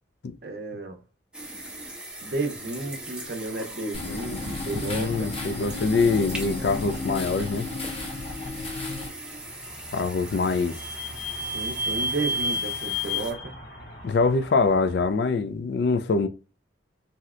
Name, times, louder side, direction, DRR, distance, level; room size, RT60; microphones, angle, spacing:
voice 1, 0.4-1.0 2.2-5.3 11.5-13.5, right 2 dB, 55° right, 0.6 m, -32 dB
sound 1, 1.3-13.3, right 1 dB, 5° right, 0.5 m, -40 dB
sound 2, 3.9-9.1, left 3 dB, 30° left, 0.7 m, -33 dB
voice 2, 4.9-7.7 9.9-10.7 14.0-16.3, left 4 dB, 60° left, 0.3 m, -24 dB
Vehicle / Squeak, 9.4-15.0, left 1 dB, 90° left, 0.9 m, -32 dB
3.2 x 2.7 x 2.4 m
head